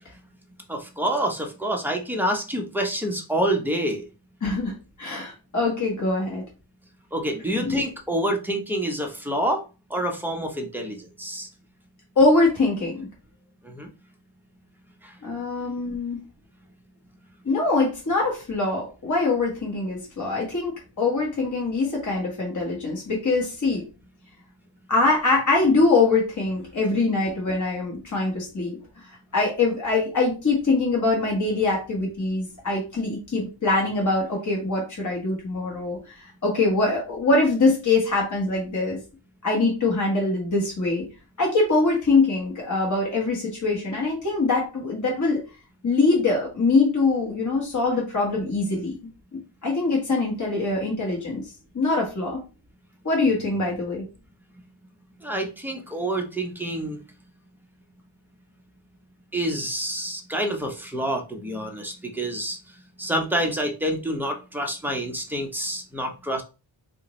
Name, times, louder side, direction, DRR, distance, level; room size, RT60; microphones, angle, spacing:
voice 1, 0.7-4.0 7.1-9.6 9.9-11.5 13.6-13.9 55.2-57.0 59.3-62.6 63.0-66.4, right 1 dB, 5° right, 2 dB, 0.6 m, -27 dB
voice 2, 4.4-4.7 5.0-6.4 7.5-7.8 12.2-13.0 15.2-16.2 17.4-23.8 24.9-28.8 29.3-39.0 39.4-41.0 41.4-45.4 45.8-48.9 49.6-51.4 51.7-52.4 53.0-54.0, left 3 dB, 40° left, -2 dB, 1.1 m, -23 dB
3.8 x 2.5 x 3.0 m, 0.31 s
wide cardioid pair, 140°, 48 cm